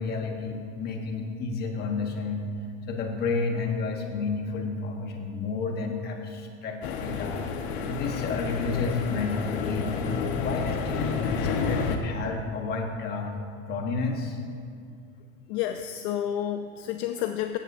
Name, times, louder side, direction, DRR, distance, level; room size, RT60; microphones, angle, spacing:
voice 1, 0.0-2.5 2.9-7.4 7.9-9.9 10.4-13.3 13.7-14.4, left 4 dB, 30° left, 3 dB, 1.3 m, -31 dB
sound 1, 6.8-12.0, left 5 dB, 75° left, 1.4 m, -30 dB
voice 2, 15.5-17.6, left 11 dB, 55° left, 7 dB, 0.6 m, -30 dB
16.0 x 14.0 x 2.7 m, 2.4 s
supercardioid pair, 165°, 32 cm